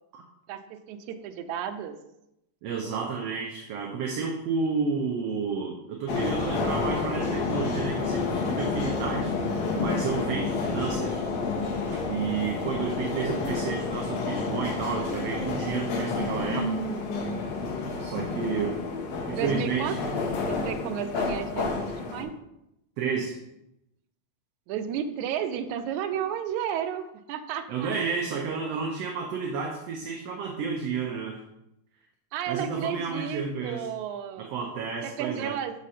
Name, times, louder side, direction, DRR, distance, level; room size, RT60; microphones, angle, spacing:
voice 1, 0.5-2.0 19.3-20.0 20.5-22.3 24.7-27.9 32.3-34.5 35.0-35.7, right 9 dB, 90° right, 9 dB, 2.0 m, -33 dB
voice 2, 2.6-9.3 9.8-11.2 12.0-16.7 18.0-18.8 19.3-20.0 23.0-23.4 27.7-31.4 32.5-33.9 34.4-35.6, right 5 dB, 70° right, 2 dB, 1.7 m, -31 dB
sound 1, 6.1-22.2, left 4 dB, 75° left, 2.3 m, -30 dB
6.3 x 6.1 x 4.2 m, 0.85 s
omnidirectional pair, 3.3 m